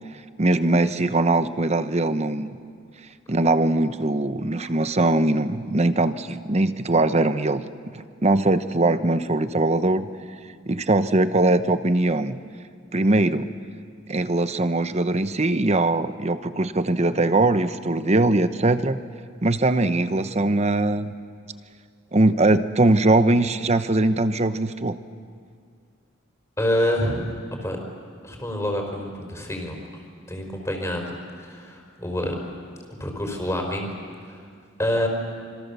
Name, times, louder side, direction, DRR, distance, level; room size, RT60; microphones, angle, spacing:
voice 1, 0.4-2.5 3.3-7.6 7.9-10.1 10.7-12.4 12.9-13.5 14.1-19.0 19.4-21.1 22.1-25.0, right 2 dB, 35° right, 11 dB, 0.9 m, -21 dB
voice 2, 26.6-27.3 27.6-27.8 28.2-29.7 30.3-31.0 31.4-32.3 33.0-33.9 34.3-34.4 34.8-35.1, left 1 dB, 15° left, 2 dB, 4.2 m, -26 dB
27.0 x 26.5 x 6.9 m, 2.2 s
head